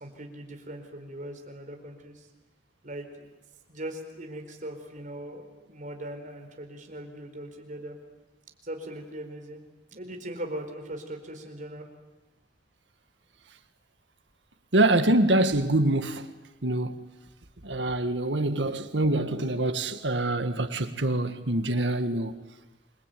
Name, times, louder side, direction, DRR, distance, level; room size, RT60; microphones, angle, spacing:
voice 1, 0.0-2.3 2.8-3.3 3.7-8.0 8.6-9.6 9.9-11.9, right 1 dB, 45° right, 4.6 m, -40 dB
voice 2, 14.7-16.3 16.6-16.9 17.6-22.3, right 1 dB, 85° right, 1.9 m, -25 dB
28.0 x 22.0 x 9.3 m
head